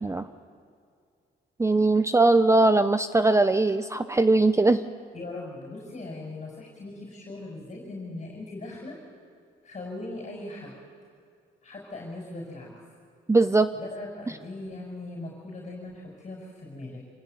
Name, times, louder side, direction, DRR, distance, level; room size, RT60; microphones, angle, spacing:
voice 1, 1.6-4.8 13.3-13.7, right 2 dB, 15° right, 11 dB, 0.7 m, -20 dB
voice 2, 5.1-9.0 9.6-10.7 11.6-12.7 13.7-17.0, left 2 dB, 35° left, -2 dB, 6.1 m, -39 dB
26.5 x 16.0 x 9.3 m, 2.2 s
cardioid pair, 90°, 20 cm